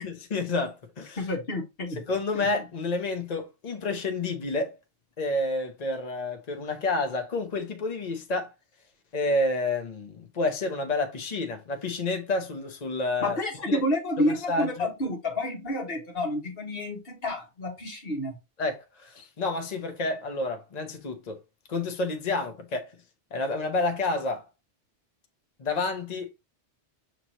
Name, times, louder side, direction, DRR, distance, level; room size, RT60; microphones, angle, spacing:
voice 1, 0.0-1.3 1.9-4.8 5.2-8.5 9.1-13.4 13.7-13.8 14.2-14.9 18.6-21.4 21.7-23.0 23.3-24.4 25.6-26.3, left 2 dB, 40° left, 0.9 m, -29 dB
voice 2, 1.2-2.0 2.4-2.5 13.2-18.4, left 1 dB, 55° left, 1.6 m, -29 dB
5.8 x 3.1 x 2.8 m
omnidirectional pair, 1.1 m